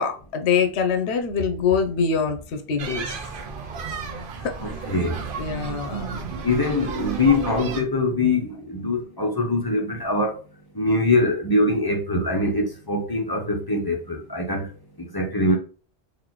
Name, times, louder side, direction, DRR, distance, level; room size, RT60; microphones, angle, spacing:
voice 1, 0.0-3.2 4.4-4.6 5.4-6.1, left 6 dB, 75° left, 0.9 m, -24 dB
sound 1, 2.8-7.8, right 5 dB, 55° right, 0.8 m, -32 dB
voice 2, 4.6-5.2 6.4-10.4 10.7-14.7 15.1-15.6, left 2 dB, 25° left, 0.6 m, -23 dB
4.0 x 2.8 x 2.9 m
omnidirectional pair, 1.1 m